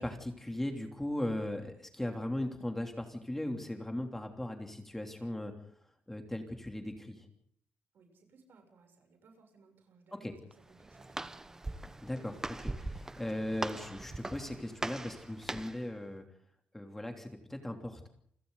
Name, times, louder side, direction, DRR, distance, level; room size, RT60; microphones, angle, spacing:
voice 1, 0.0-5.5 6.1-7.3 10.2-10.3 12.0-16.2 16.7-18.1, left 1 dB, 10° left, 3 dB, 3.1 m, -38 dB
voice 2, 7.9-11.7, right 4 dB, 60° right, 4 dB, 7.6 m, -63 dB
Walk footsteps, 10.5-15.9, right 2 dB, 15° right, 1.0 m, -41 dB
29.5 x 25.5 x 4.0 m, 0.67 s
cardioid pair, 140°, 4 cm